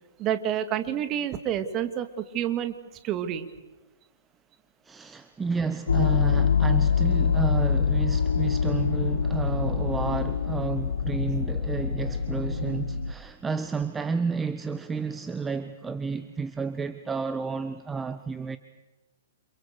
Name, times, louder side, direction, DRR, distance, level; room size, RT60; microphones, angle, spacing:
voice 1, 0.2-2.7 3.0-3.5, right 10 dB, 30° right, 2.4 m, -28 dB
voice 2, 4.8-18.6, right 5 dB, 10° right, 1.1 m, -31 dB
sound 1, 5.9-13.1, left 6 dB, 70° left, 1.4 m, -25 dB
29.5 x 27.5 x 6.8 m
figure-of-eight pair, 115°, 0 cm